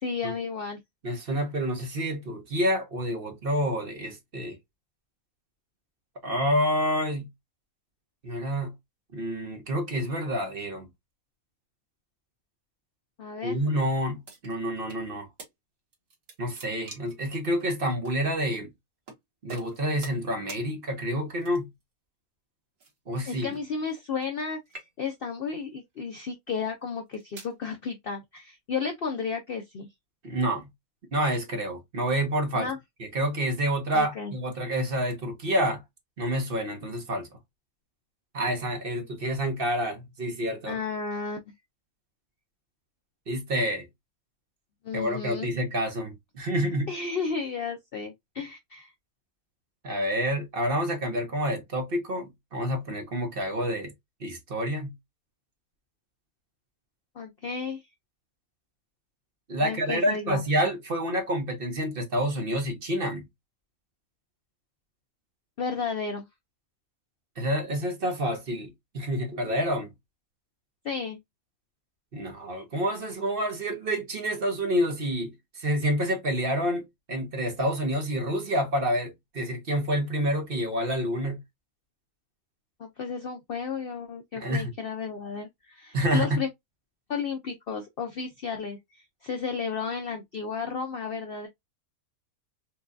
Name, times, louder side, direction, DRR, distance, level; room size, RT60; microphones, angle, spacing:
voice 1, 0.0-0.8 13.2-13.6 23.3-29.9 32.5-32.8 33.9-34.3 40.7-41.4 44.8-45.5 46.9-48.9 57.2-57.8 59.6-60.4 65.6-66.3 70.8-71.2 82.8-86.5 87.1-91.5, left 5 dB, 65° left, 0.6 m, -33 dB
voice 2, 1.0-4.6 6.2-7.2 8.2-8.7 9.1-10.9 13.4-15.3 16.4-18.7 19.4-21.7 23.1-23.5 30.2-30.7 31.1-32.7 33.0-35.8 36.2-37.3 38.3-40.8 43.3-43.9 44.9-46.9 49.8-53.9 54.2-54.9 59.5-63.2 67.4-68.7 68.9-69.9 72.1-81.4 84.3-84.7 85.9-86.4, equal, 45° right, 0.9 m, -28 dB
sound 1, 14.2-15.0 15.4-15.5 15.9-17.2 18.0-18.2 19.1-19.2 19.5-20.2 20.5-20.6 21.4-21.8 22.8-24.4 24.6-25.2 25.9-26.2 26.9-27.6, right 4 dB, 60° right, 1.6 m, -46 dB
4.4 x 2.3 x 2.5 m
omnidirectional pair, 1.5 m